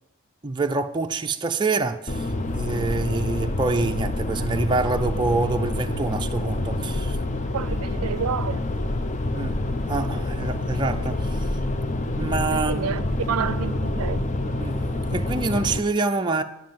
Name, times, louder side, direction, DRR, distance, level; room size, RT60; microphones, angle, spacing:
voice 1, 0.4-2.3 2.5-7.2 9.3-11.5 12.1-13.1 14.6-16.4, right 3 dB, 20° right, 0.4 m, -26 dB
sound 1, 2.1-15.8, left 2 dB, 35° left, 0.5 m, -27 dB
voice 2, 7.5-8.6 12.5-14.3, right 7 dB, 75° right, 0.4 m, -29 dB
9.6 x 7.4 x 7.5 m
head